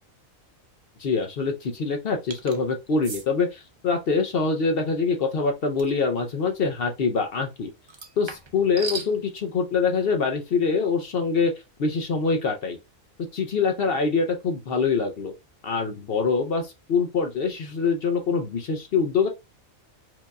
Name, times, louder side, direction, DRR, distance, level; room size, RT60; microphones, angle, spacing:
voice 1, 1.0-7.7 8.2-11.5 11.8-12.8 13.3-15.3 15.6-19.3, left 4 dB, 55° left, 0.7 m, -24 dB
sound 1, 2.3-2.6 3.0-3.3 5.8-6.0 7.9-9.1, right 4 dB, 45° right, 0.3 m, -36 dB
4.6 x 2.6 x 2.2 m
omnidirectional pair, 1.4 m